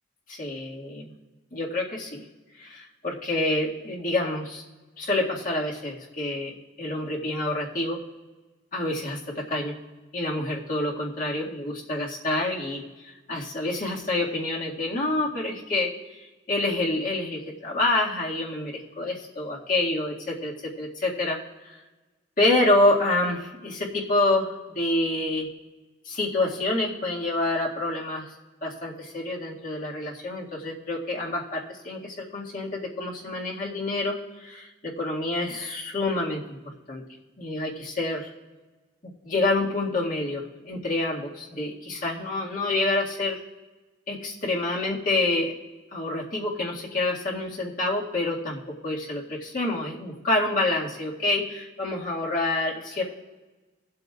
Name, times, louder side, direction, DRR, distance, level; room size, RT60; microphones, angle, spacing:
voice 1, 0.3-1.1 1.5-2.2 2.6-4.6 5.0-8.0 8.7-9.8 10.1-15.9 16.5-21.8 22.4-24.5 24.8-25.5 26.0-28.3 28.6-36.6 36.9-37.0 37.4-38.3 39.2-43.4 44.1-45.5 45.9-53.0, left 2 dB, 45° left, -3 dB, 1.9 m, -27 dB
22.5 x 7.9 x 2.4 m, 1.2 s
head